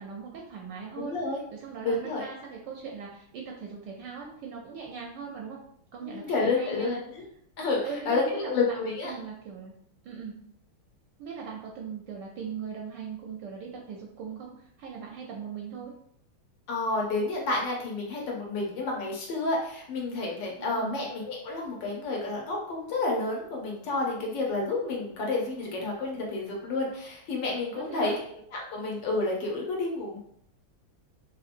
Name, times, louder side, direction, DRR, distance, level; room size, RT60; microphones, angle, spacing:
voice 1, 0.0-1.2 1.5-5.6 5.9-7.0 7.8-9.7 10.0-10.3 11.2-15.9 20.6-21.0 27.8-28.2, right 6 dB, 75° right, -1 dB, 1.0 m, -40 dB
voice 2, 1.0-1.4 1.8-2.3 6.0-7.2 7.6-9.2 16.7-30.2, left 3 dB, 65° left, -1 dB, 1.4 m, -30 dB
3.7 x 2.9 x 2.5 m, 0.68 s
omnidirectional pair, 2.3 m